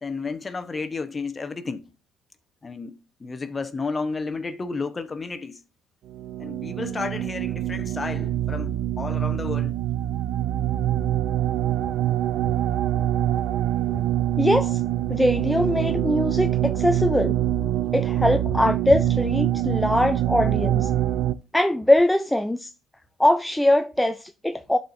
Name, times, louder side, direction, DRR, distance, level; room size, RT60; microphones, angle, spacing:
voice 1, 0.0-1.8 2.6-5.6 6.4-9.8, left 4 dB, 30° left, 0.9 m, -32 dB
sound 1, 6.1-21.3, right 12 dB, 70° right, 0.5 m, -25 dB
voice 2, 14.4-14.8 15.1-17.4 17.9-20.9 21.5-22.7 23.2-24.8, left 1 dB, 5° left, 0.4 m, -22 dB
11.5 x 4.4 x 2.6 m
cardioid pair, 85°, 0 cm